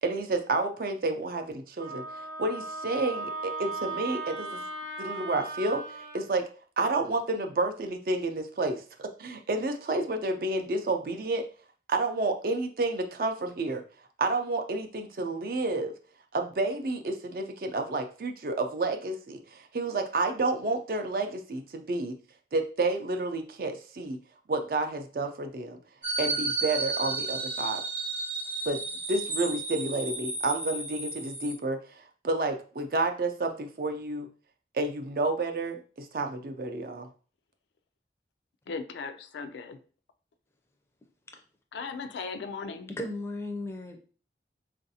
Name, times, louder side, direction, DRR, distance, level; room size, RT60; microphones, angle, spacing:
voice 1, 0.0-4.6 5.0-6.4 6.8-11.4 11.9-13.8 14.2-15.9 16.3-22.1 22.5-24.2 24.5-25.8 26.2-27.8 28.7-28.8 29.1-31.8 32.2-34.3 34.7-37.1, right 2 dB, 55° right, 0.4 m, -30 dB
Wind instrument woodwind instrument, 1.8-6.2, right 3 dB, 75° right, 0.7 m, -37 dB
sound 1, 26.0-31.5, right 3 dB, 30° right, 0.8 m, -33 dB
voice 2, 38.7-39.8 41.7-42.9, left 4 dB, 80° left, 0.4 m, -37 dB
voice 3, 43.0-44.0, left 1 dB, 15° left, 0.4 m, -35 dB
3.9 x 2.5 x 2.7 m
head